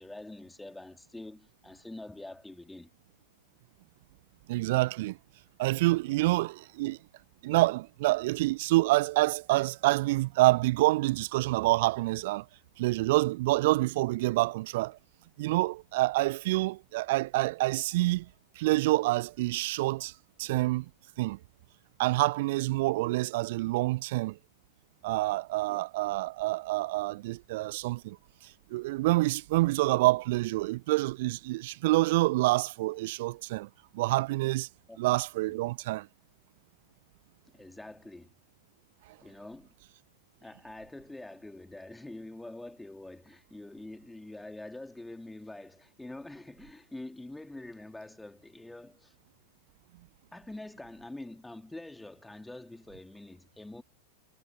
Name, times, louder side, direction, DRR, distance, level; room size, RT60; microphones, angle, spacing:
voice 1, 0.0-2.9 6.1-6.3 25.7-25.8 34.9-35.2 35.5-35.6 37.5-38.4 39.2-39.7 40.4-49.1 50.3-53.8, left 2 dB, 5° left, 3.6 m, -45 dB
voice 2, 4.5-5.2 5.6-7.0 7.4-12.5 12.8-15.0 15.4-18.3 18.6-20.1 20.4-20.9 21.2-21.4 22.0-24.4 25.0-28.2 28.7-33.7 33.9-34.7 35.0-36.1, right 19 dB, 50° right, 0.6 m, -27 dB
figure-of-eight pair, 90°, 0 cm